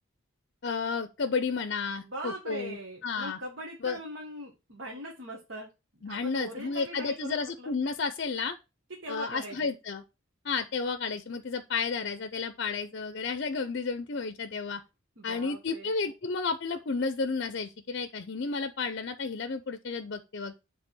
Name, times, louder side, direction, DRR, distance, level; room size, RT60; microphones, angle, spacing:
voice 1, 0.6-2.8 3.0-3.4 3.8-4.0 6.0-8.6 9.1-10.0 10.4-14.8 15.2-20.5, left 4 dB, 55° left, 0.6 m, -32 dB
voice 2, 2.0-5.7 6.0-7.7 9.0-9.6 15.2-15.9, right 1 dB, 60° right, 1.6 m, -41 dB
7.5 x 3.5 x 6.0 m
head